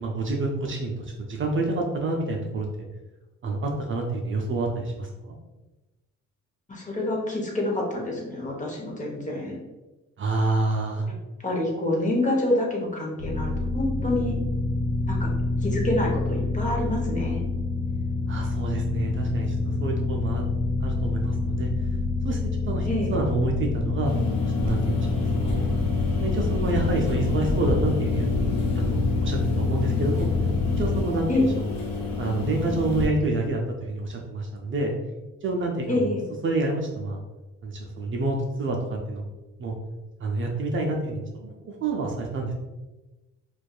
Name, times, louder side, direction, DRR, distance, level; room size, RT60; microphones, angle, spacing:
voice 1, 0.0-2.9 3.4-5.4 10.2-11.1 18.3-20.5 20.8-21.7 22.2-22.4 22.6-24.1 24.6-25.7 26.2-28.3 28.7-30.3 30.8-31.3 32.2-34.9 35.4-36.1 36.4-37.2 37.6-39.2 39.6-39.7 40.2-42.5, right 2 dB, 40° right, 1 dB, 0.4 m, -28 dB
voice 2, 6.7-9.6 11.4-14.4 15.1-15.3 15.6-17.4 22.9-23.1 31.3-31.5 35.9-36.2, left 1 dB, 25° left, -1 dB, 0.7 m, -27 dB
sound 1, 13.2-31.0, left 3 dB, 40° left, 1.4 m, -27 dB
sound 2, 24.1-33.1, left 3 dB, 60° left, 1.0 m, -29 dB
2.5 x 2.3 x 2.3 m, 1.1 s
cardioid pair, 90°, 30 cm